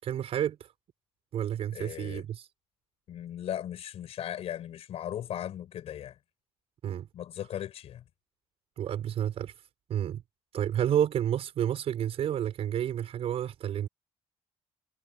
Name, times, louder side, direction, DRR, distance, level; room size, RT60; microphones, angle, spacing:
voice 1, 0.0-0.7 1.3-2.5 6.8-7.1 8.8-9.5 9.9-10.2 10.5-13.9, right 10 dB, 60° right, 5.8 m, -30 dB
voice 2, 1.7-2.2 3.1-6.2 7.1-8.0, left 11 dB, 60° left, 5.2 m, -37 dB
cardioid pair, 175°, 12 cm